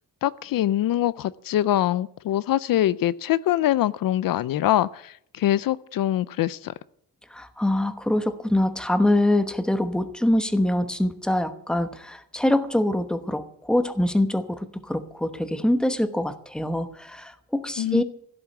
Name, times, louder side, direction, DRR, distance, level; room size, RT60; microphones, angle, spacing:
voice 1, 0.2-6.7 17.8-18.0, left 13 dB, 75° left, 0.6 m, -24 dB
voice 2, 7.3-18.0, left 1 dB, ahead, 1.0 m, -24 dB
16.0 x 7.1 x 9.4 m
wide cardioid pair, 150°, 35 cm